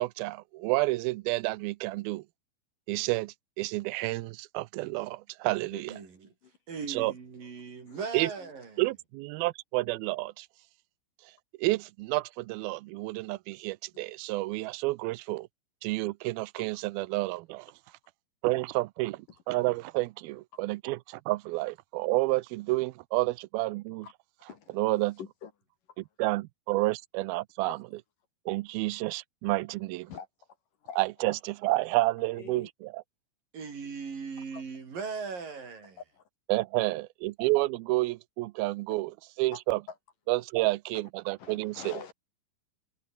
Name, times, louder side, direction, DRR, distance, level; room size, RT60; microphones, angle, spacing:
voice 1, 0.0-2.2 2.9-6.0 6.9-7.1 8.1-8.3 8.8-10.5 11.6-15.5 15.8-17.7 18.4-24.1 24.7-25.2 26.0-27.8 28.5-30.1 31.0-33.0 36.5-39.1 39.4-39.8 40.3-41.9, right 20 dB, 80° right, 2.4 m, -30 dB
voice 2, 5.9-6.3 6.7-8.8 33.5-36.0, right 5 dB, 60° right, 6.2 m, -39 dB
voice 3, 24.5-24.8 25.2-25.5 27.7-27.8 30.1-30.3 30.8-31.0 32.3-32.7 34.5-34.6 36.1-36.2 36.8-36.9 39.5-39.6 39.9-40.0 41.4-42.1, left 7 dB, 60° left, 3.8 m, -45 dB
omnidirectional pair, 4.4 m